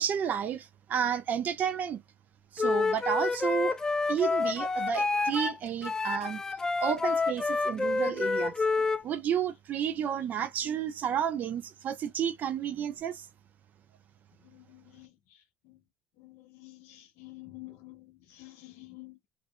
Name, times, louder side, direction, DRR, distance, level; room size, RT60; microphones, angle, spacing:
voice 1, 0.0-2.0 2.5-3.8 4.1-6.4 6.8-8.5 9.0-13.3, right 8 dB, 45° right, 0.7 m, -31 dB
Wind instrument woodwind instrument, 2.6-5.5 5.8-9.0, left 4 dB, 15° left, 0.3 m, -28 dB
voice 2, 14.4-15.8 16.2-19.3, left 19 dB, 75° left, 0.7 m, -50 dB
2.6 x 2.6 x 2.2 m
supercardioid pair, 110°, 4 cm